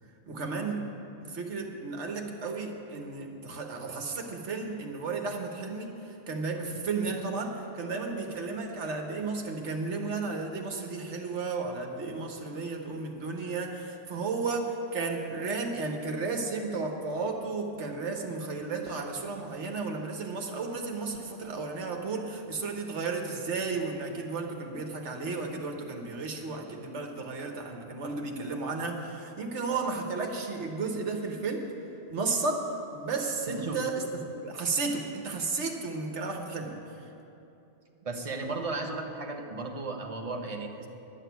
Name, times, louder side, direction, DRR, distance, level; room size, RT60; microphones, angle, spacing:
voice 1, 0.3-0.9 1.2-31.7 32.1-36.7, right 4 dB, 65° right, 2 dB, 1.5 m, -33 dB
voice 2, 33.5-33.8 38.0-40.9, right 3 dB, 30° right, 2 dB, 0.9 m, -35 dB
11.5 x 6.6 x 9.2 m, 2.8 s
omnidirectional pair, 1.3 m